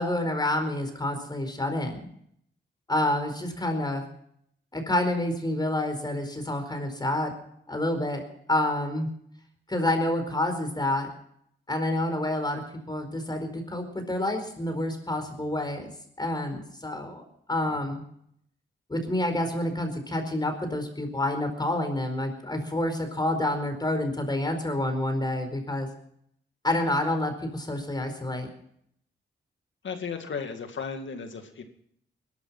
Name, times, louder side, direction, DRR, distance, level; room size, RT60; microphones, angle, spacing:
voice 1, 0.0-2.1 2.9-4.0 4.7-7.3 7.7-8.2 8.5-9.1 9.7-11.1 11.7-15.9 16.2-17.2 17.5-18.0 18.9-25.9 26.6-28.5, left 1 dB, 20° left, 6 dB, 4.5 m, -28 dB
voice 2, 29.8-31.6, left 5 dB, 65° left, 6 dB, 2.3 m, -35 dB
21.0 x 12.0 x 5.7 m, 0.69 s
cardioid pair, 85°, 21 cm